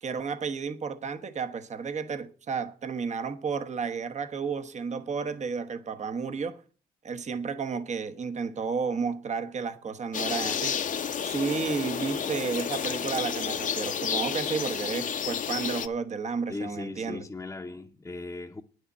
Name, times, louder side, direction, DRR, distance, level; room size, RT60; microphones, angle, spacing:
voice 1, 0.0-6.6 7.0-10.8 11.2-17.2, right 5 dB, 45° right, 1.1 m, -32 dB
sound 1, 10.1-15.9, left 7 dB, 50° left, 0.8 m, -31 dB
voice 2, 16.5-18.6, left 3 dB, 15° left, 0.9 m, -38 dB
9.5 x 6.6 x 8.5 m
cardioid pair, 85°, 17 cm